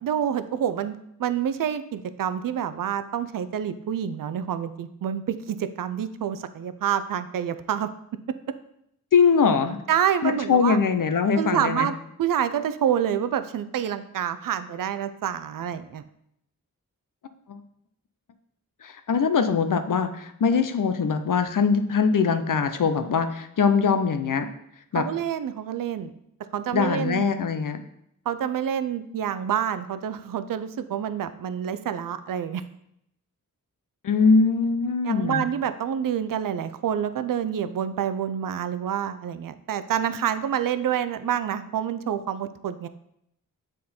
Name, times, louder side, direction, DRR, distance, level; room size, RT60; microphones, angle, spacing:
voice 1, 0.0-7.9 9.9-10.8 11.3-11.9 12.2-16.0 24.9-26.1 26.5-27.2 28.3-32.6 35.0-42.9, right 9 dB, 70° right, 12 dB, 0.5 m, -27 dB
voice 2, 9.1-9.8 10.2-11.9 17.5-17.6 18.8-24.5 24.9-25.1 26.7-27.8 34.0-35.5, left 5 dB, 65° left, 8 dB, 0.6 m, -22 dB
7.5 x 3.8 x 4.3 m, 0.75 s
cardioid pair, 55°, 34 cm